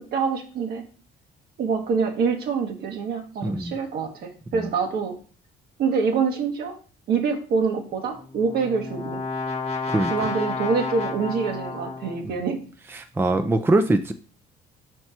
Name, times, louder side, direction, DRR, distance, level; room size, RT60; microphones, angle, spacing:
voice 1, 0.1-0.8 1.6-5.2 5.8-6.8 7.1-9.2 10.1-12.6, right 5 dB, 65° right, 3 dB, 1.6 m, -25 dB
voice 2, 3.4-3.8 4.5-4.7 9.9-10.1 12.2-12.4 12.9-14.1, right 2 dB, 15° right, 8 dB, 0.5 m, -23 dB
Brass instrument, 8.2-12.3, left 4 dB, 40° left, 1.2 m, -31 dB
5.5 x 4.5 x 4.4 m, 0.39 s
cardioid pair, 110°, 17 cm